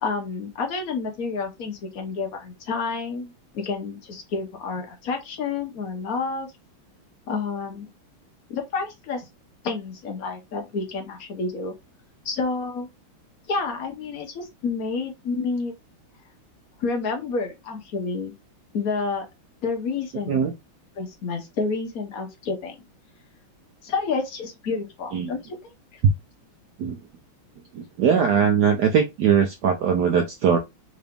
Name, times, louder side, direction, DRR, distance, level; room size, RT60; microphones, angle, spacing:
voice 1, 0.0-6.5 7.3-7.9 8.5-9.3 9.6-11.7 12.2-12.9 13.5-15.7 16.8-18.3 18.7-19.3 19.6-20.4 21.0-22.8 23.8-25.6 25.9-26.0, left 4 dB, 55° left, 1.1 m, -29 dB
voice 2, 27.7-30.6, right 7 dB, 75° right, 1.0 m, -21 dB
3.8 x 2.7 x 3.4 m
omnidirectional pair, 2.3 m